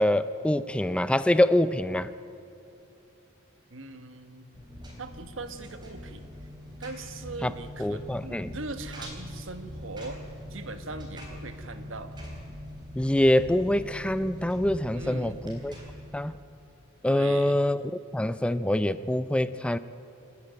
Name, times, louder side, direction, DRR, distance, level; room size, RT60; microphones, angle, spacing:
voice 1, 0.0-2.1 7.4-7.5 7.8-8.5 13.0-15.7 16.1-16.3 17.0-17.8 18.1-19.8, left 1 dB, 5° left, 14 dB, 0.4 m, -25 dB
voice 2, 3.7-4.5 5.0-6.2 6.8-10.2 10.5-12.1 14.9-15.4 17.1-17.6, right 3 dB, 70° right, 9 dB, 1.4 m, -40 dB
Engine, 4.5-16.1, left 1 dB, 20° right, 3.9 m, -42 dB
27.5 x 11.0 x 8.9 m, 3.0 s
head